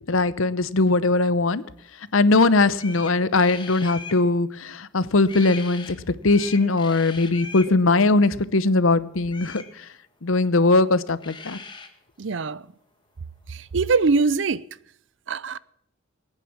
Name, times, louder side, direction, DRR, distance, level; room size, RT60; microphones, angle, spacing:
voice 1, 0.1-1.6 2.1-6.0 6.2-9.6 10.2-11.6, left 3 dB, 85° left, 0.8 m, -20 dB
sound 1, 2.4-2.5 2.7-4.2 5.2-5.9 6.2-7.7 9.3-9.7 10.9-11.0 11.2-11.9, left 4 dB, 25° left, 1.7 m, -39 dB
voice 2, 12.2-12.6 13.5-14.6 15.3-15.6, right 4 dB, 65° right, 0.5 m, -22 dB
19.5 x 9.1 x 7.4 m
head